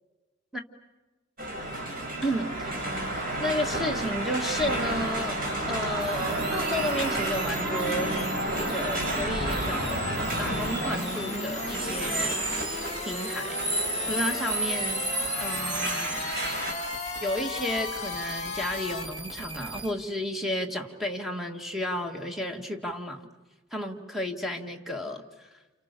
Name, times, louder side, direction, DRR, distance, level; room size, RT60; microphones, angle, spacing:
sound 1, 1.4-16.7, right 1 dB, 45° right, 6.1 m, -30 dB
voice 1, 2.2-2.8 3.4-8.1 8.5-10.0 10.4-12.4 13.0-13.6 14.1-15.1 15.4-16.2 17.2-23.2 23.7-25.5, left 1 dB, ahead, 3 dB, 2.0 m, -32 dB
sound 2, 6.0-19.9, right 2 dB, 25° right, 2.6 m, -41 dB
sound 3, 9.1-19.0, left 3 dB, 35° left, 2.2 m, -36 dB
29.5 x 29.0 x 6.9 m, 1.2 s
head